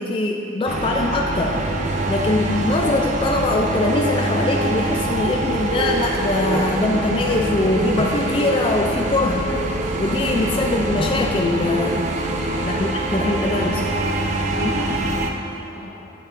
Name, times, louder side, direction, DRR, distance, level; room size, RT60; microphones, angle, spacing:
voice 1, 0.0-9.5 10.0-12.1 12.6-13.8 14.6-15.0, left 2 dB, 30° left, 1 dB, 0.3 m, -22 dB
sound 1, 0.7-15.3, right 2 dB, 40° right, 0.5 m, -24 dB
sound 2, 5.7-5.9 6.5-6.6 7.3-7.4 8.0-8.1 8.7-8.8 9.5-9.6 10.3-10.4 11.0-11.1, left 2 dB, 70° left, 1.6 m, -29 dB
voice 2, 12.6-14.0 14.5-15.9, left 1 dB, 85° left, -4 dB, 1.4 m, -41 dB
8.7 x 7.2 x 2.5 m, 3.0 s
head